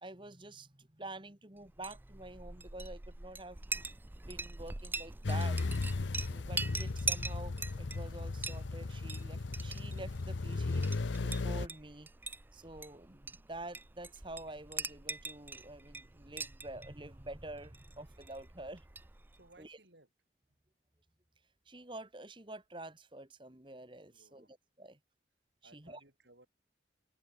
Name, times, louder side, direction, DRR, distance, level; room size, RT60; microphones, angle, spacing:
voice 1, 0.0-3.6 4.2-5.6 6.3-10.9 11.2-12.1 12.5-18.8 19.6-19.8 21.7-24.5 24.8-25.0 25.7-26.0, right 2 dB, 25° right, 1.9 m, -48 dB
Chink clink, 1.7-19.5, right 4 dB, 10° right, 0.4 m, -43 dB
sound 1, 5.2-11.7, left 3 dB, 85° left, 0.7 m, -36 dB
voice 2, 19.3-20.1 24.1-24.5 25.6-26.5, right 2 dB, 70° right, 7.8 m, -62 dB
head